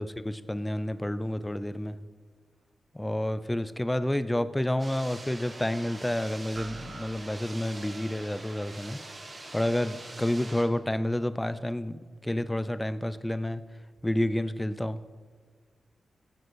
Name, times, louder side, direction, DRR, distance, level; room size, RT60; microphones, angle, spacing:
voice 1, 0.0-2.0 2.9-9.0 9.5-13.6 14.0-15.0, left 1 dB, 10° left, 14 dB, 0.4 m, -29 dB
sound 1, 4.8-10.6, right 2 dB, 30° right, 1.5 m, -44 dB
sound 2, 6.5-8.1, right 4 dB, 45° right, 0.7 m, -47 dB
15.5 x 5.2 x 6.2 m, 1.5 s
cardioid pair, 90°, 0 cm